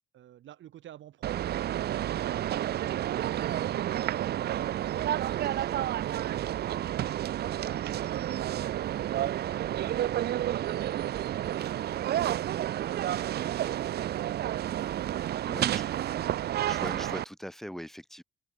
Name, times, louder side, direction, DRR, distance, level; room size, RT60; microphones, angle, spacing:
voice 1, 0.1-5.4 5.9-6.6, right 12 dB, 75° right, 2.5 m, -53 dB
sound 1, 1.2-17.2, right 12 dB, 55° right, 0.4 m, -30 dB
voice 2, 15.4-15.9 16.7-18.2, equal, ahead, 3.0 m, -41 dB
open air
cardioid pair, 90°, 20 cm